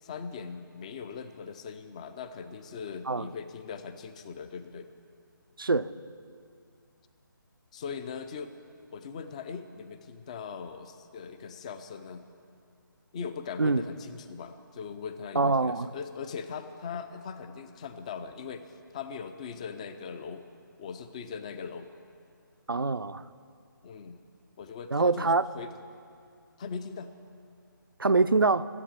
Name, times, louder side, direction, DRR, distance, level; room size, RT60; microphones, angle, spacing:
voice 1, 0.0-4.9 7.7-8.5 8.9-12.2 13.1-20.5 20.8-21.9 23.8-24.2 24.6-25.7 26.6-27.1, left 6 dB, 20° left, 10 dB, 0.4 m, -40 dB
voice 2, 5.6-5.9 13.6-13.8 15.4-15.9 22.7-23.2 24.9-25.5 28.0-28.7, right 3 dB, 80° right, 14 dB, 0.5 m, -24 dB
13.5 x 8.6 x 8.7 m, 2.4 s
figure-of-eight pair, 145°, 11 cm